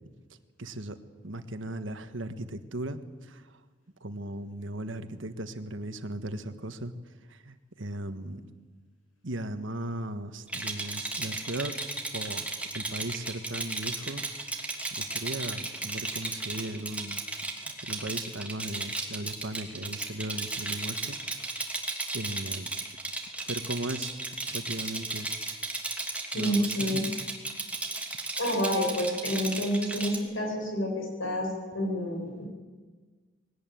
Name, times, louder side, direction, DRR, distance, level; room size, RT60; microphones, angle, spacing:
voice 1, 0.6-0.9 1.2-3.0 4.0-6.9 7.5-7.6 7.8-8.4 9.2-11.7 12.1-12.4 12.7-14.2 15.2-17.2 17.9-21.2 22.1-22.7 23.5-24.1 24.5-25.3 26.3-26.6, right 1 dB, 70° right, 9 dB, 1.5 m, -36 dB
Rattle, 10.5-30.2, right 2 dB, 5° right, 2.9 m, -34 dB
voice 2, 26.3-27.1 28.4-31.5 31.7-32.5, equal, 85° left, 0 dB, 7.5 m, -29 dB
21.0 x 18.5 x 9.2 m, 1.4 s
head